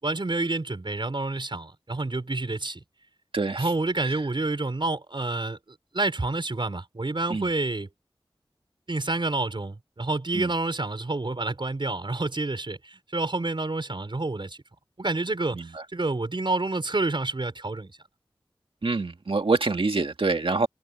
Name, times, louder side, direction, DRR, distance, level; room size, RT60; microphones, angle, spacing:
voice 1, 0.0-2.8 3.6-5.6 5.9-7.9 8.9-14.6 15.0-17.9, right 2 dB, 60° right, 5.4 m, -28 dB
voice 2, 3.3-3.6 4.0-4.2 7.3-7.5 10.3-10.5 15.5-15.8 18.8-20.7, right 3 dB, 75° right, 2.4 m, -26 dB
wide cardioid pair, 55°, 9 cm